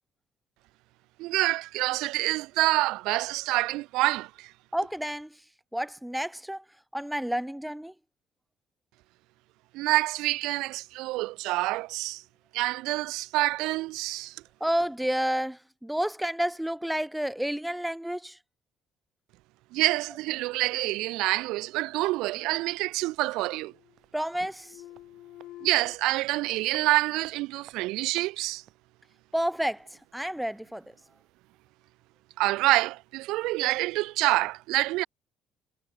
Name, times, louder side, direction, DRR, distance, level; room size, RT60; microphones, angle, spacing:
voice 1, 1.2-4.5 9.7-12.2 12.5-14.3 19.7-23.7 25.6-28.6 32.4-35.1, right 20 dB, 90° right, 0.5 m, -27 dB
voice 2, 4.7-5.4 5.7-6.6 6.9-7.9 14.6-18.4 24.1-24.8 29.3-30.8, equal, ahead, 0.9 m, -30 dB
sound 1, 21.9-22.8 23.1-24.1 24.3-26.0, left 15 dB, 65° left, 1.8 m, -50 dB
sound 2, 23.9-28.9 29.2-29.3, right 12 dB, 55° right, 3.7 m, -57 dB
cardioid pair, 165°, 0 cm